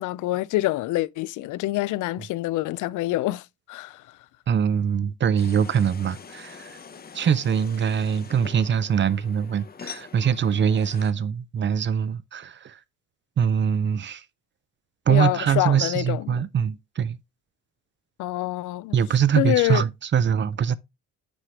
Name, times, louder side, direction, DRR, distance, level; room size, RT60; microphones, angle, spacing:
voice 1, 0.0-4.0 15.1-16.4 18.2-19.0 19.4-19.8, left 17 dB, 80° left, 0.4 m, -26 dB
voice 2, 4.5-6.8 7.1-12.8 13.4-14.2 15.1-17.2 18.9-20.8, right 8 dB, 40° right, 0.5 m, -23 dB
sound 1, 5.4-11.1, left 6 dB, 30° left, 0.7 m, -44 dB
7.8 x 4.8 x 2.9 m
cardioid pair, 90°, 30 cm